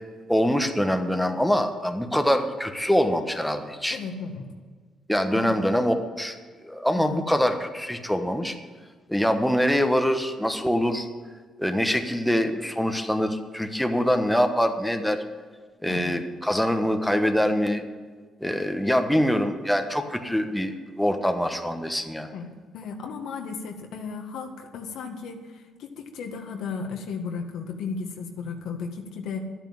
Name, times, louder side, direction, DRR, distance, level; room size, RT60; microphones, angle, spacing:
voice 1, 0.3-4.0 5.1-6.4 6.6-8.5 9.1-11.1 11.6-15.2 15.8-17.8 18.4-22.3, equal, ahead, 5 dB, 1.3 m, -24 dB
voice 2, 3.9-4.5 5.3-5.5 6.9-7.3 15.9-16.2 22.3-22.5 22.7-29.4, left 5 dB, 80° left, 4 dB, 1.7 m, -35 dB
11.5 x 9.2 x 8.8 m, 1.5 s
cardioid pair, 90°, 0 cm